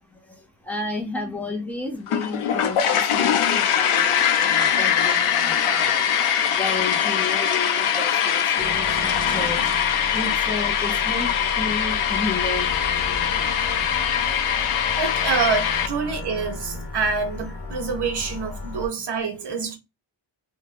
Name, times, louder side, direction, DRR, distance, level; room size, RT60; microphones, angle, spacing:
voice 1, 0.7-6.1 6.5-9.7 10.1-12.7 13.1-13.5, left 2 dB, 5° left, 0.5 m, -32 dB
sound 1, 2.1-15.9, left 8 dB, 85° left, 0.6 m, -22 dB
sound 2, 8.6-18.9, left 2 dB, 60° left, 0.9 m, -34 dB
voice 2, 15.0-19.8, right 5 dB, 55° right, 0.9 m, -26 dB
2.5 x 2.2 x 3.2 m
wide cardioid pair, 155°, 49 cm